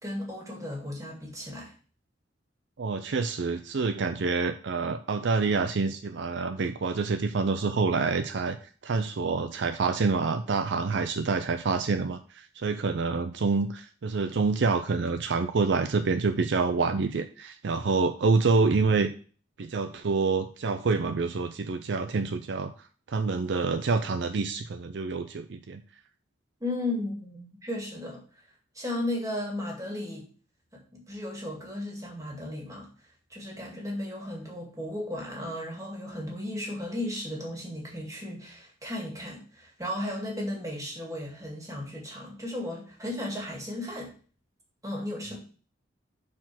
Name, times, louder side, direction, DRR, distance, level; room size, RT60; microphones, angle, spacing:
voice 1, 0.0-1.7 26.6-28.2 28.7-30.3 30.7-32.9 33.3-44.1 44.8-45.4, left 1 dB, 15° right, -1 dB, 2.1 m, -35 dB
voice 2, 2.8-8.6 8.8-19.1 19.6-22.7 23.1-25.8, right 4 dB, 65° right, 9 dB, 0.5 m, -27 dB
6.0 x 4.4 x 6.0 m, 0.40 s
head